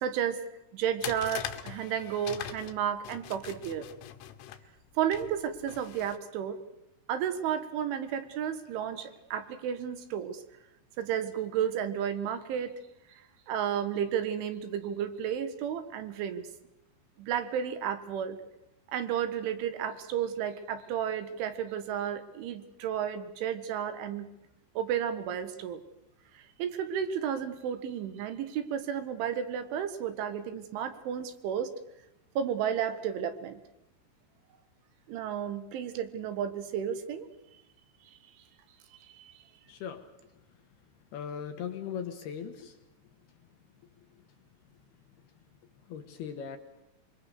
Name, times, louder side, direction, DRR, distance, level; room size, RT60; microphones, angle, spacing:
voice 1, 0.0-0.4 0.7-3.9 5.0-6.6 7.1-10.4 11.0-12.7 13.5-16.4 17.2-18.4 18.9-24.3 24.8-25.8 26.6-31.7 32.4-33.6 35.1-37.3 39.2-39.3, right 9 dB, 75° right, 10 dB, 3.9 m, -32 dB
sound 1, 1.0-6.2, left 11 dB, 90° left, 4.0 m, -42 dB
voice 2, 39.7-40.0 41.1-42.7 45.9-46.6, left 7 dB, 65° left, 6 dB, 2.9 m, -38 dB
25.5 x 24.0 x 6.6 m, 0.90 s
omnidirectional pair, 5.8 m